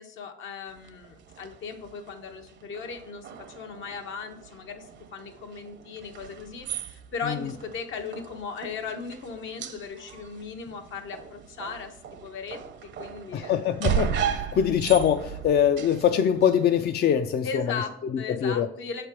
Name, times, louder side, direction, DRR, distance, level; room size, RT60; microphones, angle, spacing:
voice 1, 0.0-4.9 5.1-12.0 12.2-12.6 13.0-13.5 17.4-19.1, left 5 dB, 75° left, 4 dB, 1.1 m, -37 dB
sound 1, 0.7-16.9, right 8 dB, 65° right, 0.7 m, -36 dB
voice 2, 13.3-17.6 18.3-18.7, left 9 dB, 55° left, 7 dB, 0.4 m, -23 dB
6.6 x 3.3 x 5.7 m, 0.84 s
cardioid pair, 90°, 20 cm